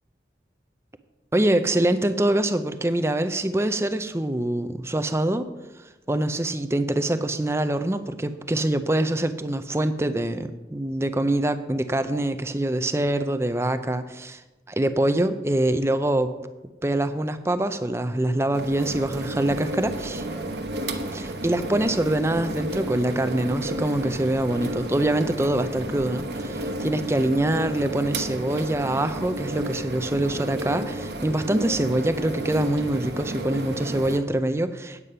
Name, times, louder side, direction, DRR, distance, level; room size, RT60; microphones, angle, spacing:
voice 1, 1.3-5.5 6.1-14.4 14.7-16.3 16.8-20.3 21.1-35.0, right 1 dB, 15° right, 10 dB, 0.5 m, -24 dB
sound 1, 18.5-34.2, right 1 dB, 70° right, 1.0 m, -32 dB
9.2 x 8.3 x 5.6 m, 1.1 s
head